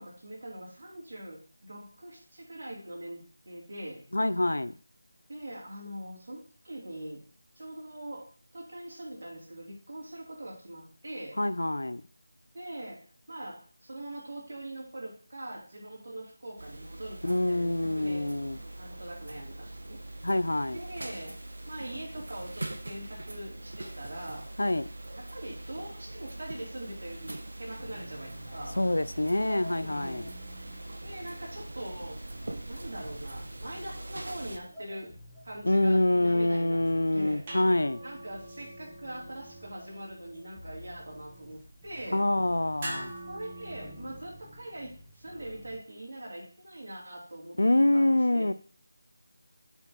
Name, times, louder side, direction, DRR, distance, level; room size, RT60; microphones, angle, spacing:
voice 1, 0.0-4.1 5.3-7.2 7.6-8.3 8.5-11.4 12.5-18.3 18.8-20.0 20.7-21.4 21.7-24.5 25.1-28.9 29.8-30.3 31.0-32.2 32.7-37.4 38.0-42.2 43.3-47.6 47.9-48.5, right 1 dB, 55° right, -3 dB, 4.1 m, -42 dB
voice 2, 4.1-4.8 11.4-12.0 17.2-18.6 20.2-20.8 24.6-24.9 28.8-30.3 35.6-38.0 42.1-43.1 47.6-48.5, left 1 dB, 90° left, 14 dB, 0.7 m, -26 dB
midnight clock, 16.6-34.6, right 1 dB, 70° right, 1.4 m, -42 dB
sound 1, 27.8-45.8, equal, 5° left, 1.8 m, -51 dB
sound 2, 36.8-44.7, right 1 dB, 25° right, 1.7 m, -45 dB
8.2 x 4.6 x 5.4 m, 0.42 s
figure-of-eight pair, 170°, 0 cm